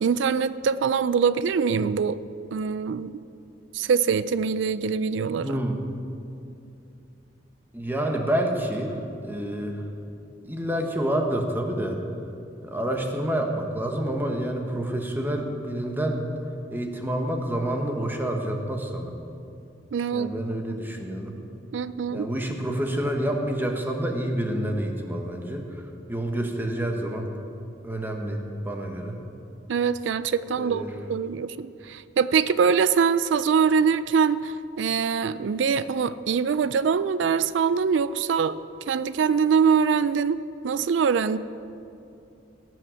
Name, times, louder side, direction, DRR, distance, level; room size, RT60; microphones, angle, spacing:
voice 1, 0.0-2.2 2.5-3.2 3.7-5.6 19.9-20.3 20.7-20.8 21.7-22.3 29.7-38.6 38.9-41.4, right 6 dB, 85° right, 15 dB, 0.4 m, -23 dB
voice 2, 5.4-5.8 7.7-9.8 10.4-12.0 12.6-16.2 16.7-19.2 20.1-21.3 22.1-27.3 27.8-29.2 30.6-30.9, right 1 dB, 10° right, 2 dB, 1.2 m, -28 dB
17.5 x 6.3 x 7.0 m, 2.6 s
head